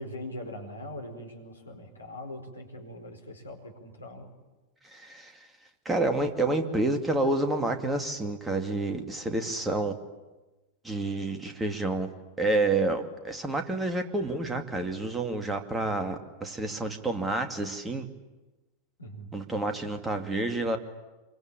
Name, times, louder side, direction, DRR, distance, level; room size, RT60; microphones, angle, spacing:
voice 1, 0.0-4.3 19.0-19.3, left 1 dB, 80° left, 2 dB, 4.7 m, -41 dB
voice 2, 4.8-5.5 5.8-10.0 10.8-12.1 12.4-18.1 19.3-20.8, right 2 dB, 10° right, 5 dB, 2.5 m, -29 dB
26.5 x 24.0 x 8.8 m, 1.1 s
figure-of-eight pair, 90°, 0 cm